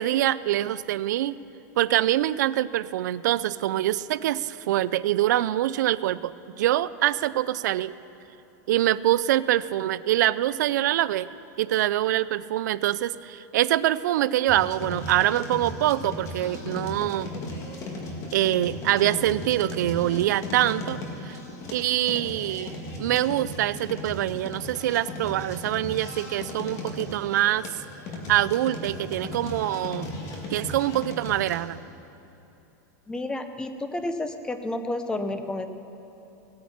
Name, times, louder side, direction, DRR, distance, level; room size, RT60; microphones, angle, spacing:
voice 1, 0.0-1.4 1.8-7.9 8.7-11.3 11.6-17.3 18.3-21.4 21.7-27.7 28.3-30.1 30.5-31.8, right 13 dB, 80° right, 16 dB, 0.4 m, -25 dB
sound 1, 14.5-31.6, left 2 dB, 30° left, 1.8 m, -37 dB
voice 2, 33.1-35.7, left 2 dB, 10° left, 8 dB, 0.6 m, -30 dB
17.0 x 8.6 x 5.8 m, 3.0 s
supercardioid pair, 150°, 10 cm